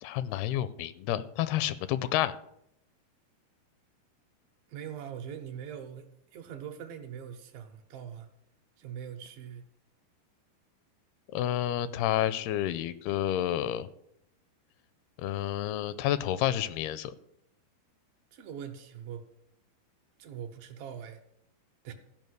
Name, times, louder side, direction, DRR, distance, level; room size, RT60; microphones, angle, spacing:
voice 1, 0.0-2.3 11.3-13.9 15.2-17.1, left 12 dB, 85° left, 15 dB, 2.5 m, -30 dB
voice 2, 4.7-8.3 8.8-9.6 18.3-19.2 20.2-21.2 21.8-21.9, right 8 dB, 70° right, 5 dB, 2.5 m, -42 dB
14.5 x 5.5 x 7.9 m, 0.76 s
omnidirectional pair, 4.6 m